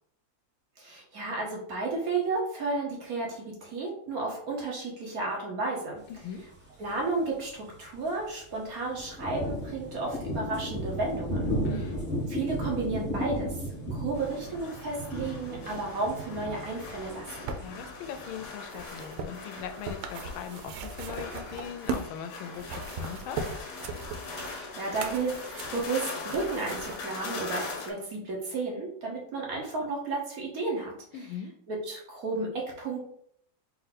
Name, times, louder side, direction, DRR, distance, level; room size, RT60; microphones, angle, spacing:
voice 1, 0.8-6.0 6.8-11.9 12.3-13.5 13.9-17.5 24.4-30.9 31.7-33.1, right 3 dB, 55° right, -1 dB, 1.2 m, -33 dB
voice 2, 6.1-6.4 11.6-12.0 17.6-23.4 31.1-31.5, left 8 dB, 85° left, 8 dB, 1.4 m, -40 dB
sound 1, 6.9-7.0 7.1-7.2 7.6-7.7 8.0-8.4 8.8-18.5, equal, 10° right, 0.8 m, -34 dB
sound 2, 14.1-27.9, left 4 dB, 65° left, 1.1 m, -41 dB
sound 3, 17.0-22.2 22.5-27.0 27.8-27.9, right 4 dB, 85° right, 1.4 m, -38 dB
4.4 x 2.6 x 4.1 m, 0.66 s
omnidirectional pair, 2.2 m